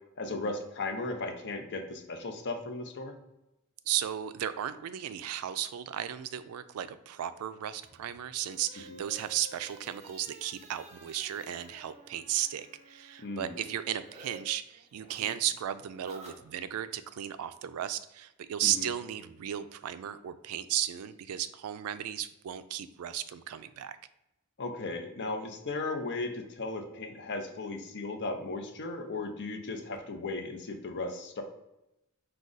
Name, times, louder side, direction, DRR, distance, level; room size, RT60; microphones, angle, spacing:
voice 1, 0.2-3.2 8.9-9.0 13.2-13.6 18.6-18.9 24.6-31.4, left 3 dB, 55° left, 5 dB, 0.6 m, -36 dB
voice 2, 3.9-24.0, right 11 dB, 75° right, 13 dB, 0.3 m, -35 dB
sound 1, 7.8-14.4 14.7-16.9, right 2 dB, 30° right, 0.7 m, -53 dB
4.9 x 2.3 x 3.9 m, 0.90 s
head